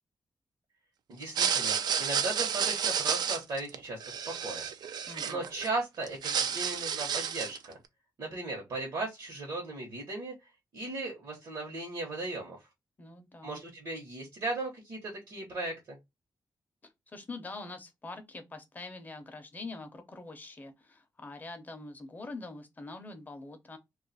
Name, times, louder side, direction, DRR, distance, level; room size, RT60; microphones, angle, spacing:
voice 1, 1.1-4.0 4.3-4.6 5.3-7.8 8.2-10.3 10.7-12.6 13.4-16.0, right 2 dB, 65° right, 1.0 m, -37 dB
sound 1, 1.2-5.7 6.0-7.7, right 7 dB, 80° right, 0.4 m, -31 dB
voice 2, 5.1-5.4 13.0-13.6 16.8-23.8, left 3 dB, 25° left, 0.5 m, -44 dB
2.4 x 2.3 x 3.9 m
wide cardioid pair, 170°, 7 cm